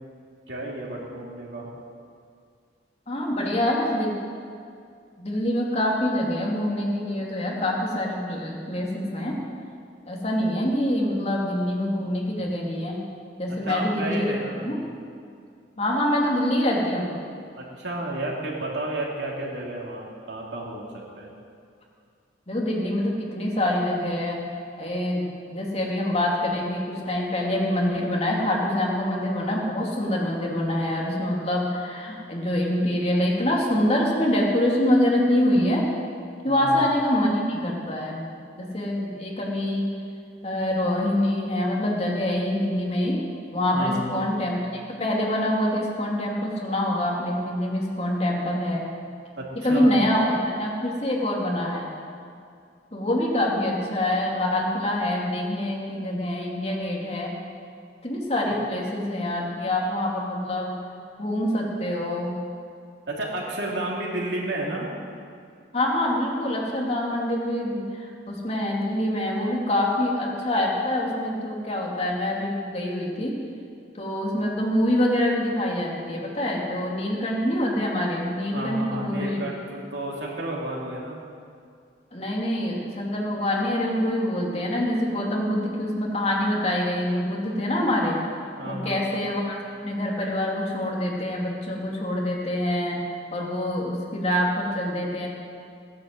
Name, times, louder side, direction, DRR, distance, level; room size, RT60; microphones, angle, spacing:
voice 1, 0.5-1.7 13.6-14.8 17.5-21.3 36.4-36.8 43.7-44.2 49.4-49.9 63.1-64.9 78.5-81.2 88.6-89.2, right 1 dB, 70° right, -2 dB, 3.1 m, -32 dB
voice 2, 3.1-4.1 5.2-9.4 10.0-13.0 13.4-14.3 14.6-14.8 15.8-17.1 22.5-24.4 24.8-25.2 25.5-35.9 36.4-38.3 38.6-39.9 40.4-43.2 43.5-44.6 44.9-48.9 49.5-51.9 52.9-57.3 58.0-60.8 61.2-62.4 65.7-73.3 73.9-79.4 82.1-88.2 88.7-93.0 93.3-95.3, left 1 dB, 35° left, -2 dB, 2.8 m, -25 dB
17.0 x 10.5 x 7.9 m, 2.3 s
head